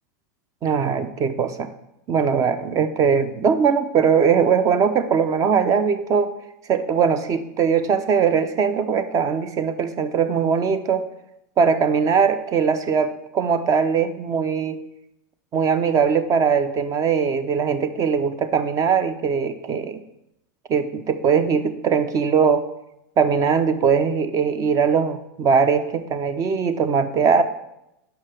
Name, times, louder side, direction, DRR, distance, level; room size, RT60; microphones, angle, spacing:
voice 1, 0.6-1.7 2.1-6.3 6.7-11.0 11.6-14.8 15.5-20.0 20.7-22.7 23.2-27.4, right 6 dB, 30° right, 11 dB, 0.7 m, -20 dB
5.8 x 5.5 x 6.6 m, 0.85 s
hypercardioid pair, 110°, 11 cm